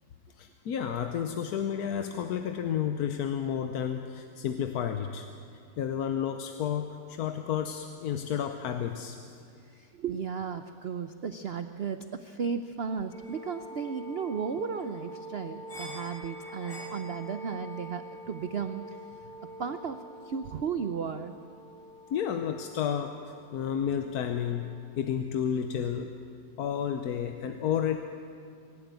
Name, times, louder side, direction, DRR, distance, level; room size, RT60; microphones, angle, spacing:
voice 1, 0.4-5.3 5.8-9.2 22.1-26.1 26.6-28.0, left 8 dB, 65° left, 7 dB, 1.2 m, -31 dB
voice 2, 9.7-19.0 19.6-21.3, right 6 dB, 90° right, 9 dB, 0.5 m, -34 dB
sound 1, 13.1-24.8, equal, 40° left, 3.4 m, -45 dB
24.0 x 11.5 x 9.5 m, 2.3 s
omnidirectional pair, 2.0 m